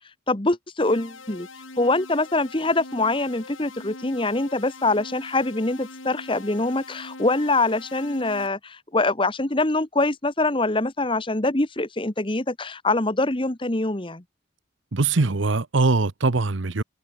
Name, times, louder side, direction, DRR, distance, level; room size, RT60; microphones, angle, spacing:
voice 1, 0.3-1.5 1.8-14.2, left 2 dB, 25° left, 1.3 m, -24 dB
sound 1, 0.8-8.5, left 3 dB, 85° left, 5.3 m, -42 dB
voice 2, 14.9-16.8, right 3 dB, 70° right, 1.0 m, -22 dB
head